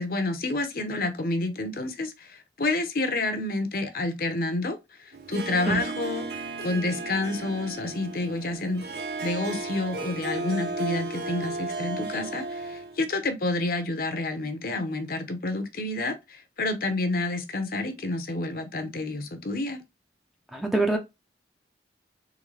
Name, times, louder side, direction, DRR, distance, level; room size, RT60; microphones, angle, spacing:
voice 1, 0.0-4.8 5.3-8.8 9.2-19.8, left 2 dB, 55° left, 0.8 m, -29 dB
Harp, 5.1-13.0, right 3 dB, 65° right, 0.8 m, -34 dB
voice 2, 20.5-21.0, right 2 dB, ahead, 0.6 m, -24 dB
3.8 x 3.5 x 3.2 m
head